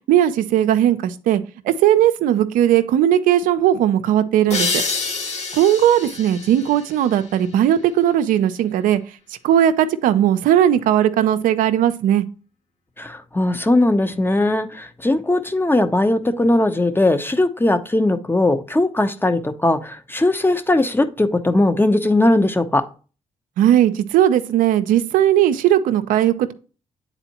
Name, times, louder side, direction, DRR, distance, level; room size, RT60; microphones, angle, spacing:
voice 1, 0.1-4.8 5.5-9.0 9.4-12.2 23.6-26.5, right 11 dB, 85° right, 10 dB, 0.5 m, -17 dB
sound 1, 4.5-7.9, left 3 dB, 60° left, 2.0 m, -28 dB
voice 2, 13.0-22.8, left 2 dB, 15° left, 8 dB, 0.9 m, -19 dB
8.9 x 4.2 x 2.9 m, 0.36 s
supercardioid pair, 55°, 14 cm